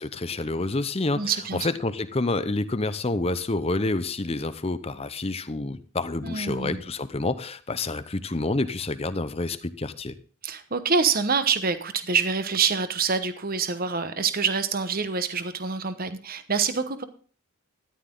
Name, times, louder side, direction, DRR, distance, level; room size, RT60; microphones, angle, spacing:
voice 1, 0.0-10.1, left 2 dB, 25° left, 12 dB, 0.7 m, -28 dB
voice 2, 1.1-1.7 6.2-6.8 10.4-17.0, right 5 dB, 40° right, 11 dB, 1.0 m, -26 dB
13.5 x 11.0 x 3.8 m, 0.41 s
head